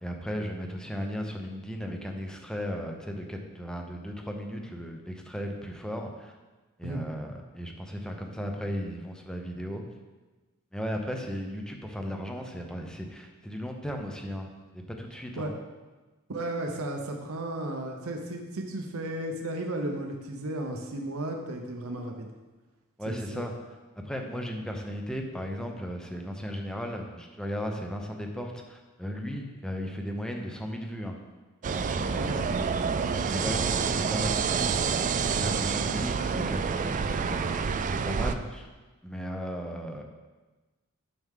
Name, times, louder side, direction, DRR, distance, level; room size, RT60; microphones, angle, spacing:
voice 1, 0.0-6.3 6.8-9.8 10.7-15.5 23.0-23.5 24.0-31.2 31.7-32.7 33.2-37.6 37.9-38.7 39.0-40.0, equal, 5° left, 2 dB, 0.8 m, -36 dB
voice 2, 16.3-22.3 23.1-23.5 32.2-32.4, right 1 dB, 65° right, 2 dB, 0.8 m, -34 dB
sound 1, 31.6-38.4, right 5 dB, 35° right, 0.3 m, -28 dB
9.3 x 6.1 x 3.7 m, 1.2 s
head